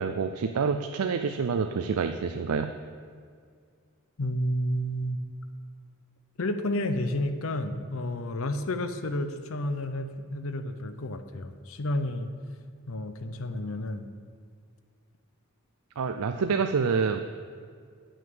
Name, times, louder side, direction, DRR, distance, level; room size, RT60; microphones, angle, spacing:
voice 1, 0.0-2.7 16.0-17.2, right 5 dB, 75° right, 8 dB, 0.4 m, -27 dB
voice 2, 4.2-5.2 6.4-12.3 12.9-14.1, left 1 dB, 65° left, 9 dB, 0.7 m, -31 dB
8.8 x 6.3 x 7.8 m, 2.1 s
head